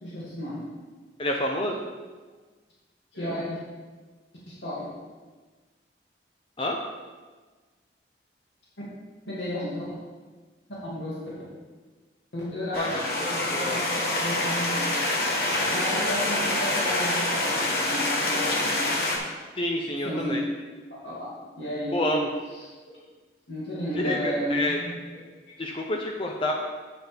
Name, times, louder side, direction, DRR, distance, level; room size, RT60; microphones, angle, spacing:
voice 1, 0.0-0.6 3.1-3.6 4.5-4.8 9.3-9.8 10.8-11.2 12.3-15.0 15.7-18.9 19.9-20.4 20.9-22.2 22.5-22.7 23.5-25.3, equal, 80° left, -8 dB, 2.4 m, -33 dB
voice 2, 1.2-1.8 6.6-6.8 12.8-13.0 13.5-13.8 19.6-20.4 21.9-22.3 23.9-24.8 25.6-26.5, left 1 dB, 30° left, 1 dB, 0.6 m, -28 dB
sound 1, 12.7-19.2, left 1 dB, 55° left, 1.3 m, -26 dB
8.7 x 8.0 x 3.5 m, 1.3 s
head